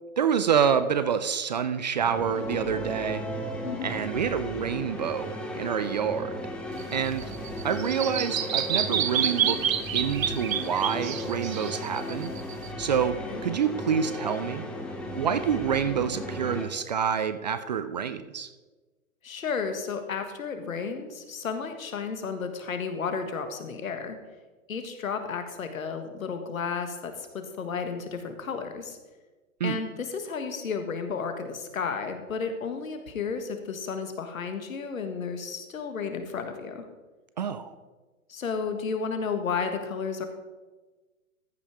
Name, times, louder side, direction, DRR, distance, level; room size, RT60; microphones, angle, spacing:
voice 1, 0.2-3.2 3.8-6.3 6.9-7.3 7.6-9.6 9.9-12.3 12.8-14.7 15.1-18.5 29.6-29.8 37.4-37.7, right 7 dB, 35° right, 12 dB, 0.4 m, -27 dB
sound 1, 2.0-16.7, equal, ahead, 0.7 m, -36 dB
Bird vocalization bird call bird song, 6.8-12.7, right 9 dB, 70° right, 1.0 m, -29 dB
voice 2, 12.9-13.4 19.2-24.2 24.7-29.0 29.6-36.8 38.3-40.3, left 5 dB, 75° left, 7 dB, 1.7 m, -33 dB
14.0 x 5.6 x 4.9 m, 1.2 s
hypercardioid pair, 130°, 42 cm